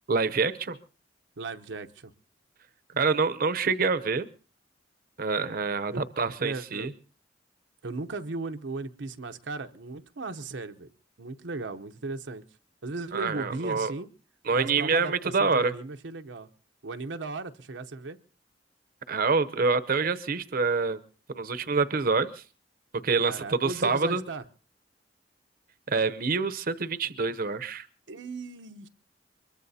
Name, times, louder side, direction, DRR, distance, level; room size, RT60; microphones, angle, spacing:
voice 1, 0.1-0.8 3.0-4.3 5.2-6.9 13.1-13.9 14.5-15.7 19.1-21.0 21.3-22.4 23.0-24.2 25.9-27.9, right 4 dB, 55° right, 0.7 m, -26 dB
voice 2, 1.4-2.1 5.9-6.1 6.4-6.9 7.8-10.9 11.2-12.4 12.8-14.1 14.5-16.5 16.8-18.2 23.2-24.4 28.1-28.9, right 3 dB, 85° right, 0.8 m, -36 dB
23.5 x 22.0 x 2.8 m
head